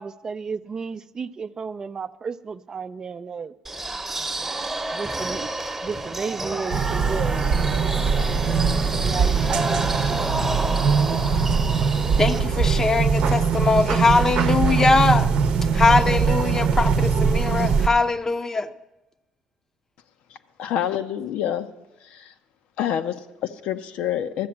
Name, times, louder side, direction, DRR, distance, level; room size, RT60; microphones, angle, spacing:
voice 1, 0.0-3.5 4.9-5.5 5.8-7.5 9.0-10.3, right 5 dB, 35° right, 0.5 m, -33 dB
sound 1, 3.6-12.4, right 2 dB, 15° right, 1.0 m, -30 dB
sound 2, 6.7-17.9, right 5 dB, 65° right, 0.8 m, -21 dB
voice 2, 12.2-15.3 15.7-18.7, left 3 dB, 25° left, 0.6 m, -21 dB
voice 3, 20.6-21.7 22.0-22.3 22.8-24.5, left 10 dB, 75° left, 0.7 m, -27 dB
13.0 x 7.6 x 7.2 m
cardioid pair, 100°, 2 cm